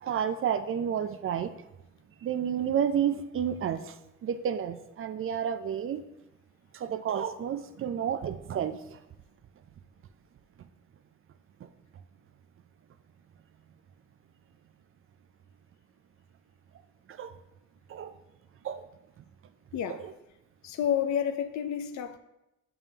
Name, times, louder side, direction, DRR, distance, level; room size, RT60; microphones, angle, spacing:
voice 1, 0.0-1.6 2.2-6.0 6.7-9.0 11.6-11.7 17.1-17.4 17.9-18.1 18.6-18.8 19.9-20.1, right 8 dB, 45° right, 0.4 m, -31 dB
voice 2, 19.7-20.0 20.6-22.2, left 9 dB, 65° left, 0.6 m, -30 dB
6.8 x 5.4 x 2.8 m
cardioid pair, 90°, 30 cm